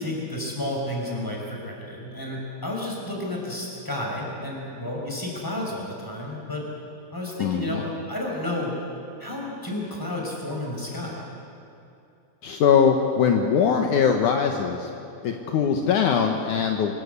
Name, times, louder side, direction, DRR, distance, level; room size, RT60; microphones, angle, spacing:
voice 1, 0.0-6.7 7.1-8.8 9.2-11.2, left 1 dB, 5° left, -2 dB, 5.0 m, -31 dB
voice 2, 7.4-7.8 12.4-14.9 15.2-17.0, left 7 dB, 75° left, 4 dB, 1.8 m, -21 dB
25.0 x 19.5 x 8.3 m, 2.7 s
omnidirectional pair, 5.2 m